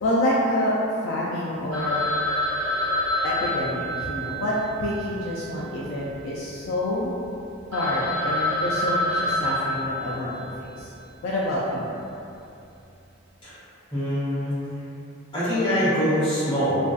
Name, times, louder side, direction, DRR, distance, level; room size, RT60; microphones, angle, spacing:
voice 1, 0.0-0.7 1.0-2.0 3.2-7.1 7.7-10.3 10.6-10.9 11.2-11.9, left 1 dB, 65° left, -6 dB, 0.3 m, -27 dB
Telephone, 1.7-6.1 6.3-6.4 7.0-7.1 7.4-7.5 7.7-10.7, left 1 dB, 60° right, 0.7 m, -27 dB
voice 2, 13.9-14.5 15.3-16.8, equal, 25° left, -14 dB, 1.0 m, -23 dB
2.5 x 2.3 x 2.3 m, 2.7 s
head